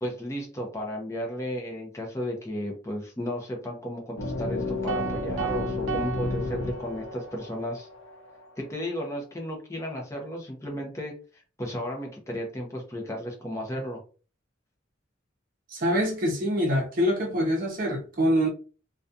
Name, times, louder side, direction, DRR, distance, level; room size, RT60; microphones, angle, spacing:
voice 1, 0.0-7.9 8.6-14.0, equal, 15° left, 0.6 m, -34 dB
sound 1, 4.2-8.8, left 2 dB, 85° left, 0.5 m, -33 dB
sound 2, 4.9-7.3, right 7 dB, 70° right, 0.3 m, -35 dB
voice 2, 15.7-18.5, equal, 45° right, 0.7 m, -25 dB
2.3 x 2.2 x 2.6 m
head